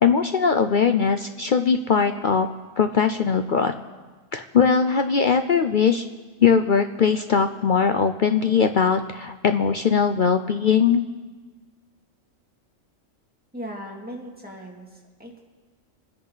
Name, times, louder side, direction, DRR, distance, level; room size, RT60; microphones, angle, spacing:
voice 1, 0.0-2.5 2.8-3.7 4.3-6.1 6.4-11.1, left 6 dB, 55° left, 7 dB, 0.5 m, -20 dB
voice 2, 13.5-15.4, equal, 5° right, -2 dB, 2.4 m, -38 dB
27.0 x 10.5 x 4.0 m, 1.3 s
omnidirectional pair, 1.4 m